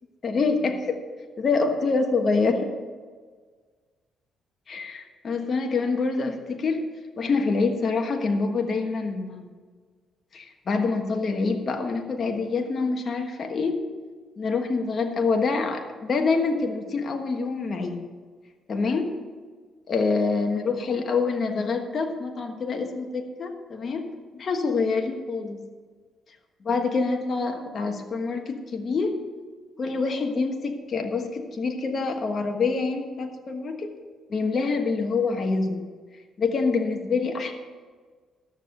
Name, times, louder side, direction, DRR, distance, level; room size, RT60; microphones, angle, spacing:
voice 1, 0.2-1.0 1.4-2.7 4.7-6.9 7.2-9.5 10.3-13.8 14.4-18.0 18.7-19.1 19.9-24.1 24.3-25.6 26.6-29.2 29.8-33.9 34.3-35.9 36.4-37.5, left 4 dB, 45° left, 4 dB, 1.3 m, -26 dB
13.0 x 7.1 x 6.5 m, 1.5 s
cardioid pair, 90°, 0 cm